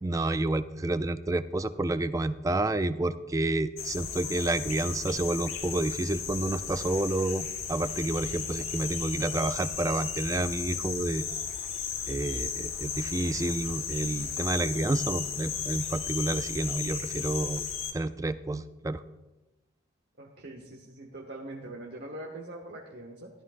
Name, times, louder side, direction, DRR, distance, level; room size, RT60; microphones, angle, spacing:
voice 1, 0.0-11.2 12.1-17.6 17.9-19.0, right 2 dB, 15° right, 12 dB, 0.3 m, -29 dB
sound 1, 3.8-17.9, left 7 dB, 90° left, 1.5 m, -35 dB
voice 2, 20.2-23.3, right 1 dB, 55° right, 0 dB, 1.1 m, -42 dB
14.0 x 13.0 x 2.5 m, 1.1 s
head